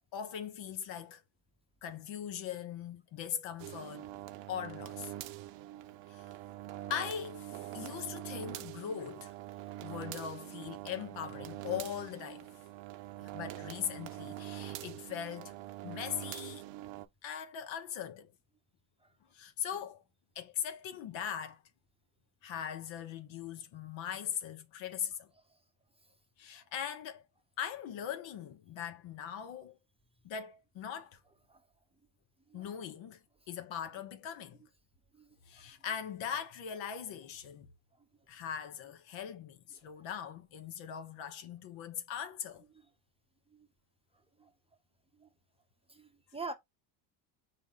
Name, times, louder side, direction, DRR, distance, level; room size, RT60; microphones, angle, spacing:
voice 1, 0.1-1.2 1.8-4.1 4.5-5.1 6.1-6.3 6.9-9.3 9.8-12.5 13.2-15.6 15.8-16.6 17.2-18.3 19.3-20.0 20.3-21.6 22.4-25.3 26.4-27.2 27.6-29.8 30.2-31.2 32.5-33.2 33.5-34.6 35.5-37.7 38.3-42.6, left 8 dB, 65° left, 1.0 m, -40 dB
sound 1, 3.6-17.1, right 15 dB, 65° right, 0.7 m, -44 dB
voice 2, 35.1-35.7 43.5-43.7 44.4-44.5 45.2-45.3 45.9-46.5, right 3 dB, 10° right, 0.7 m, -45 dB
4.3 x 2.8 x 3.6 m
supercardioid pair, 85°, 50 cm